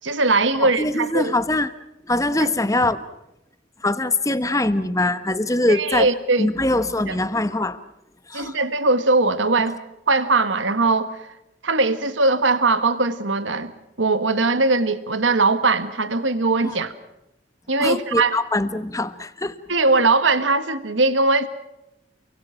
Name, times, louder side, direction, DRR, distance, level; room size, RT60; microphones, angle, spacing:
voice 1, 0.0-1.3 5.7-6.5 7.1-7.2 8.3-9.8 10.1-11.3 11.6-13.7 14.0-16.9 17.7-18.4 19.7-21.5, right 3 dB, 85° right, 1.6 m, -20 dB
voice 2, 0.5-1.7 2.0-3.0 3.8-6.1 6.4-7.8 8.3-8.6 16.6-16.8 17.8-19.6, left 2 dB, 15° left, 1.2 m, -22 dB
29.0 x 23.5 x 5.9 m
head